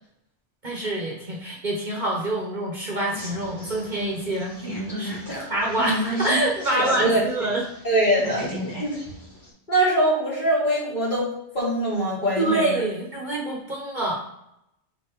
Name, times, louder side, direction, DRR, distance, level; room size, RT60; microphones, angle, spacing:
voice 1, 0.6-5.2 5.5-7.6 12.4-14.2, right 1 dB, 45° right, -2 dB, 1.1 m, -26 dB
sound 1, 3.1-7.3 7.6-9.5, right 1 dB, 20° left, 2.3 m, -32 dB
voice 2, 6.7-7.2 7.8-8.5 8.8-9.0 9.7-11.3 11.5-12.8, right 1 dB, 45° left, -7 dB, 2.6 m, -22 dB
7.9 x 2.9 x 4.5 m, 0.80 s
omnidirectional pair, 1.2 m